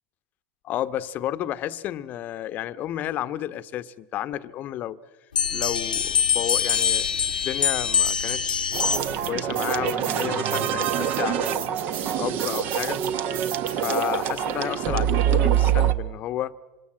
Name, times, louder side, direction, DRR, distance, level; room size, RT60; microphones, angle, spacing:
voice 1, 0.6-5.0 5.5-6.0 6.3-7.1 7.4-8.7 9.2-13.0 13.7-16.6, left 12 dB, 40° left, 1.0 m, -31 dB
sound 1, 5.3-9.3, left 7 dB, 75° left, 1.2 m, -24 dB
sound 2, 8.7-15.9, right 10 dB, 40° right, 1.3 m, -25 dB
27.0 x 26.0 x 7.5 m
figure-of-eight pair, 80°, 5 cm